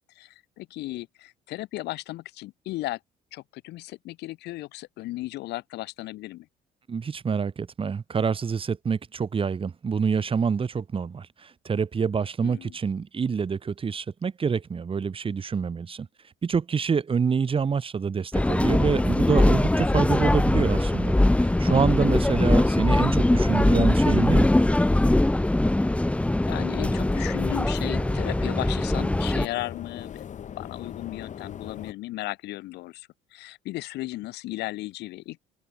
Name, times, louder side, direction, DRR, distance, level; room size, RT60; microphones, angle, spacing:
voice 1, 0.1-3.0 3.3-6.5 12.4-12.8 21.6-22.1 26.0-26.1 26.4-30.3 30.6-35.5, left 18 dB, 85° left, 3.3 m, -35 dB
voice 2, 6.9-16.1 16.4-24.5, right 6 dB, 30° right, 3.2 m, -26 dB
sound 1, 18.3-29.5, left 1 dB, 5° left, 1.5 m, -22 dB
sound 2, 26.8-31.9, left 8 dB, 45° left, 2.6 m, -40 dB
cardioid pair, 110°, 17 cm